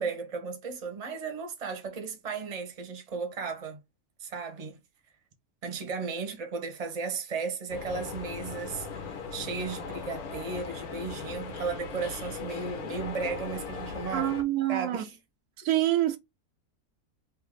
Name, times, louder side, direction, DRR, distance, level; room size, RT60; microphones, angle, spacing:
voice 1, 0.0-3.8 4.2-4.8 5.6-14.4 14.7-15.2, right 4 dB, 30° right, 0.8 m, -35 dB
sound 1, 7.7-14.4, left 5 dB, 80° left, 1.4 m, -39 dB
voice 2, 14.1-15.0 15.6-16.2, right 14 dB, 85° right, 1.2 m, -26 dB
3.6 x 2.8 x 3.6 m
omnidirectional pair, 1.5 m